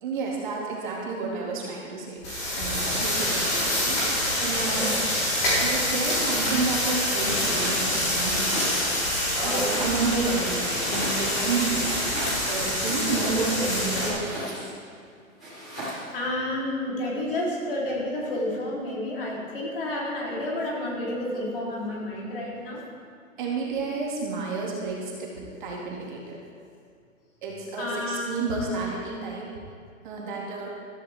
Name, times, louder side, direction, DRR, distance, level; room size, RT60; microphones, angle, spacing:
voice 1, 0.0-4.9 5.6-9.1 9.4-12.0 12.5-14.6 23.4-26.4 27.4-29.5 30.0-30.8, right 4 dB, 35° right, -3 dB, 2.3 m, -31 dB
sound 1, 2.2-14.1, left 1 dB, 20° left, 4.1 m, -26 dB
Domestic sounds home sounds, 7.3-7.8 8.2-9.1 9.4-10.2 10.7-11.5 11.8-13.6 14.1-14.8 15.4-16.1, equal, 5° left, 0.5 m, -36 dB
voice 2, 9.4-9.8 13.2-13.6 16.1-22.8 27.8-28.7, left 1 dB, 40° left, -4 dB, 3.8 m, -30 dB
15.5 x 14.0 x 3.6 m, 2.1 s
hypercardioid pair, 175°, 41 cm